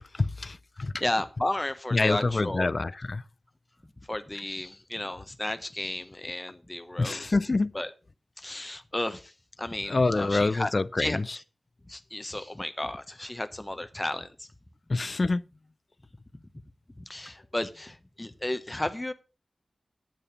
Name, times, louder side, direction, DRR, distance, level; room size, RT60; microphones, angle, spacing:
voice 1, 0.1-0.9 1.9-3.2 7.0-7.7 9.9-11.4 14.9-15.4, left 3 dB, 50° left, 0.5 m, -26 dB
voice 2, 1.0-2.7 4.1-7.2 7.7-7.9 8.4-9.3 9.6-10.7 11.0-11.2 11.9-14.5 17.0-19.1, left 1 dB, 20° left, 0.9 m, -33 dB
10.0 x 7.1 x 5.9 m
wide cardioid pair, 75°, 0 cm